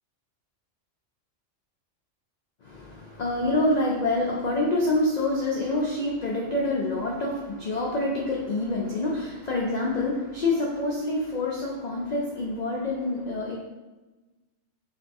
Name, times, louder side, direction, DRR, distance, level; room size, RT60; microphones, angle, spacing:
voice 1, 2.6-13.6, left 2 dB, 80° left, -3 dB, 0.3 m, -27 dB
4.8 x 2.3 x 2.6 m, 1.1 s
omnidirectional pair, 1.3 m